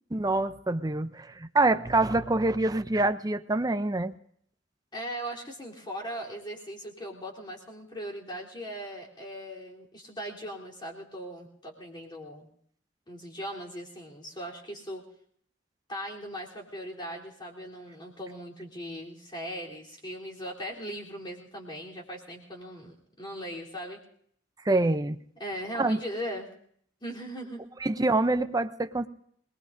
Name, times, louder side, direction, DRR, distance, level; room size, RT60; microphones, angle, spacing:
voice 1, 0.1-4.1 24.6-25.2 25.8-26.0 27.8-29.1, right 2 dB, 20° right, 10 dB, 0.5 m, -26 dB
voice 2, 4.9-12.5 13.1-15.0 15.9-24.0 25.4-26.5 27.0-27.6, equal, 25° left, -2 dB, 3.4 m, -39 dB
27.0 x 20.0 x 2.6 m, 0.64 s
head